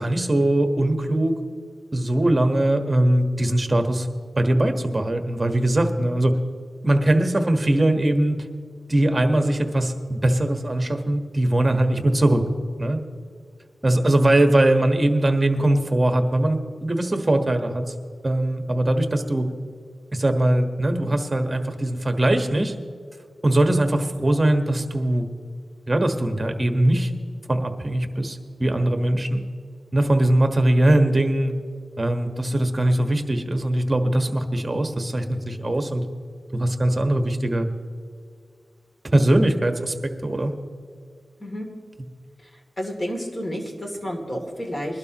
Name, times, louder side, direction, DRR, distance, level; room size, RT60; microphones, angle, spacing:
voice 1, 0.0-1.4 1.9-4.1 4.4-6.3 6.8-8.4 8.9-12.4 12.8-13.0 13.8-17.8 18.2-19.5 20.1-22.7 23.4-25.3 25.9-27.1 27.5-29.4 29.9-31.5 32.0-36.0 36.5-37.7 39.1-40.5, right 1 dB, 30° right, 5 dB, 1.4 m, -21 dB
voice 2, 42.8-45.0, equal, 30° left, 0 dB, 3.0 m, -30 dB
21.5 x 12.0 x 3.0 m, 2.1 s
wide cardioid pair, 65°, 0 cm